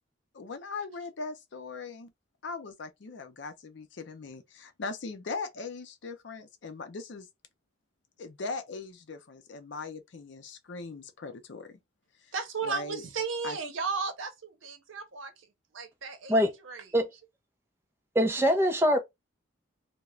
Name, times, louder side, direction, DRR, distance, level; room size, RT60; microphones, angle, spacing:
voice 1, 0.3-2.1 2.4-7.3 8.2-11.8 12.2-12.3 12.6-13.0 13.4-13.6, left 4 dB, 65° left, 0.5 m, -40 dB
voice 2, 12.3-15.5 15.7-16.9, right 5 dB, 85° right, 0.7 m, -35 dB
voice 3, 18.1-19.0, equal, 10° right, 0.5 m, -23 dB
2.4 x 2.1 x 2.9 m
head